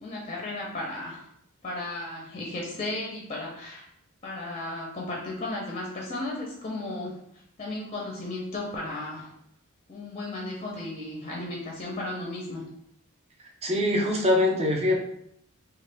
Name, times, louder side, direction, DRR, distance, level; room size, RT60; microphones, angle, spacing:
voice 1, 0.0-1.3 1.6-3.9 4.2-7.2 7.6-9.3 9.9-12.7, left 2 dB, 25° left, -2 dB, 0.6 m, -35 dB
voice 2, 13.6-15.0, left 1 dB, 30° right, 0 dB, 0.5 m, -23 dB
3.1 x 2.2 x 3.3 m, 0.73 s
head